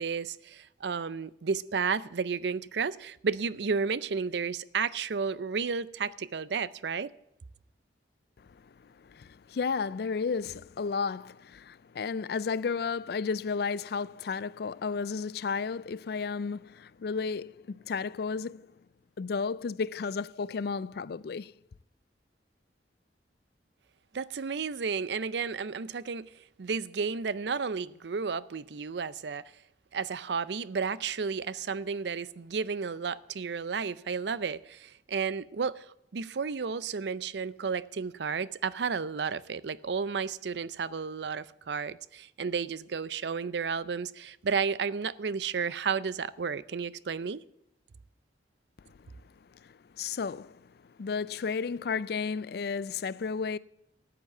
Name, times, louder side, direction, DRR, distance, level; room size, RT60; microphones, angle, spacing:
voice 1, 0.0-7.1 24.1-26.3 26.6-29.4 29.9-47.4, right 5 dB, 75° right, 0.5 m, -32 dB
voice 2, 8.4-18.7 19.2-21.5 48.8-49.1 49.6-53.6, left 5 dB, 60° left, 0.4 m, -33 dB
14.0 x 8.0 x 7.0 m
head